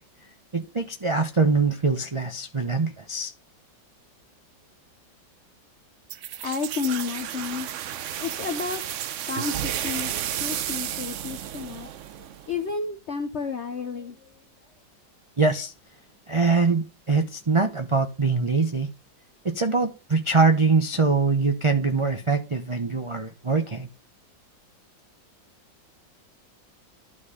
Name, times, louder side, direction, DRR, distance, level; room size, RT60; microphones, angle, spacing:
voice 1, 0.5-3.3 15.4-15.7 16.3-18.9 19.4-23.9, right 4 dB, 40° right, 0.4 m, -23 dB
sound 1, 6.1-12.7, right 11 dB, 75° right, 0.7 m, -32 dB
voice 2, 6.4-7.7 8.2-8.8 9.3-11.9 12.5-14.4, left 5 dB, 50° left, 0.9 m, -31 dB
12.0 x 4.4 x 5.0 m
omnidirectional pair, 2.0 m